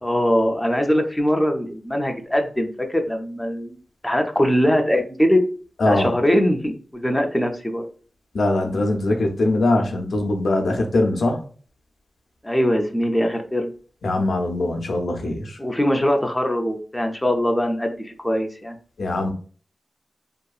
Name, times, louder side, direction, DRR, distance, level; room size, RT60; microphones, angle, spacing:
voice 1, 0.0-3.8 4.0-5.4 5.9-7.8 12.4-13.7 15.6-18.8, equal, 10° left, 3 dB, 0.4 m, -21 dB
voice 2, 8.3-11.4 14.0-15.6 19.0-19.3, left 2 dB, 70° left, 3 dB, 0.5 m, -21 dB
2.7 x 2.3 x 2.3 m, 0.41 s
wide cardioid pair, 135°, 0 cm